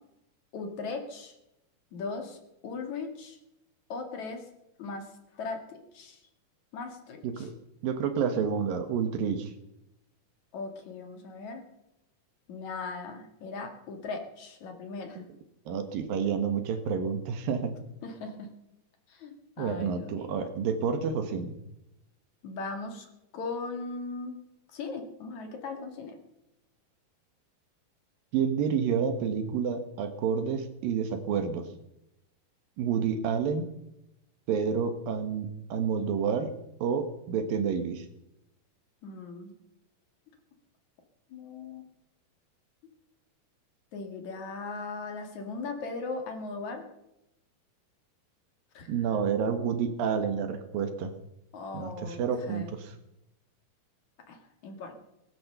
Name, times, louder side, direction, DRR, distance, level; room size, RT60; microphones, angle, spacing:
voice 1, 0.5-1.3 1.9-3.4 3.9-4.5 4.8-6.2 6.7-7.5 10.5-11.6 12.5-15.2 18.0-18.5 19.1-20.3 22.4-23.1 23.3-24.3 24.7-26.2 39.0-39.5 41.3-41.8 43.9-46.8 48.7-48.9 51.5-52.2 52.5-52.8 54.3-55.0, left 4 dB, 55° left, 4 dB, 3.3 m, -38 dB
voice 2, 7.8-9.5 15.7-17.8 19.6-21.5 28.3-31.7 32.8-33.7 34.5-36.5 36.8-38.1 48.9-51.1 51.7-52.9, right 6 dB, 75° right, 8 dB, 3.0 m, -29 dB
19.0 x 11.0 x 6.7 m, 0.87 s
omnidirectional pair, 4.2 m